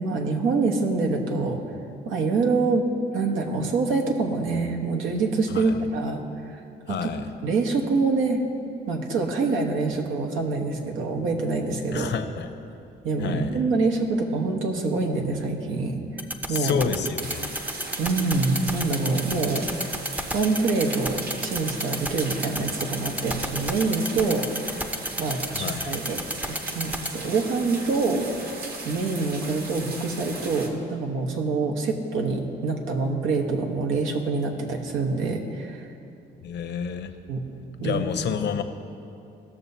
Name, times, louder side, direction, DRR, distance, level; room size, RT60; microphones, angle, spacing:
voice 1, 0.0-1.6 2.0-2.9 3.1-6.2 6.5-6.6 6.9-7.1 7.4-8.4 8.9-12.1 13.0-16.0 16.5-16.8 18.0-19.7 20.3-24.8 25.2-26.2 26.5-28.6 28.8-35.9 37.3-37.4 37.8-38.0, right 3 dB, 85° right, 1 dB, 1.2 m, -25 dB
voice 2, 6.9-7.3 11.9-12.5 13.2-13.5 16.5-17.5 25.5-25.9 36.4-37.1 37.8-38.6, left 7 dB, 60° left, 8 dB, 0.7 m, -29 dB
sound 1, 16.2-27.1, equal, 10° right, 0.6 m, -28 dB
sound 2, 17.2-30.7, right 3 dB, 50° right, 1.3 m, -37 dB
17.0 x 6.8 x 2.8 m, 2.6 s
cardioid pair, 90°, 20 cm